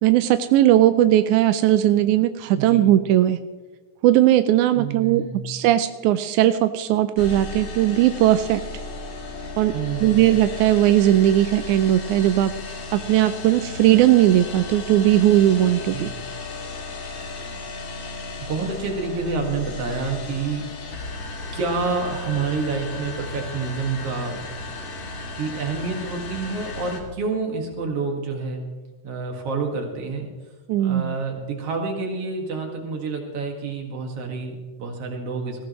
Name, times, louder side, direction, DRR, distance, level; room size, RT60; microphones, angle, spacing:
voice 1, 0.0-3.4 4.0-8.6 9.6-9.7 10.0-16.1 30.7-31.2, right 13 dB, 90° right, 11 dB, 2.0 m, -18 dB
voice 2, 4.7-5.5 9.7-10.3 15.9-16.1 18.5-21.3 21.5-24.4 25.4-28.6 29.0-30.3 30.8-35.7, right 4 dB, 55° right, 2 dB, 2.8 m, -28 dB
sound 1, 7.2-27.0, left 3 dB, 70° left, 3.0 m, -35 dB
20.0 x 15.0 x 3.1 m, 1.2 s
omnidirectional pair, 3.4 m